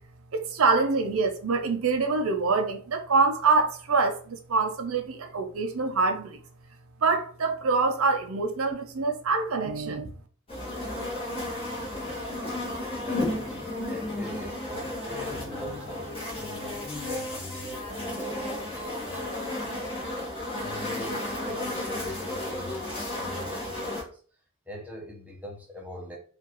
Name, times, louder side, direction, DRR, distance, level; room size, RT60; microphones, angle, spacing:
voice 1, 0.3-6.4 7.0-10.1, right 4 dB, 75° right, 0.6 m, -25 dB
sound 1, 10.5-24.0, left 1 dB, 25° left, 1.6 m, -33 dB
voice 2, 13.0-24.2 24.7-26.2, left 1 dB, 5° right, 0.9 m, -43 dB
4.5 x 2.6 x 3.0 m
head